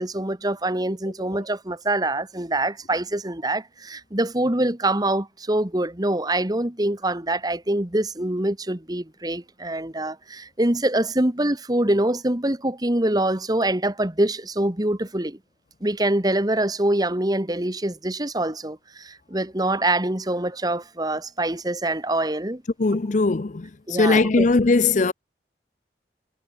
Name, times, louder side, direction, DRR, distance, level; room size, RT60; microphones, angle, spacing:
voice 1, 0.0-15.4 15.8-22.6 23.9-24.5, right 1 dB, 20° right, 1.7 m, -24 dB
voice 2, 22.8-25.1, left 3 dB, 45° left, 0.6 m, -20 dB
head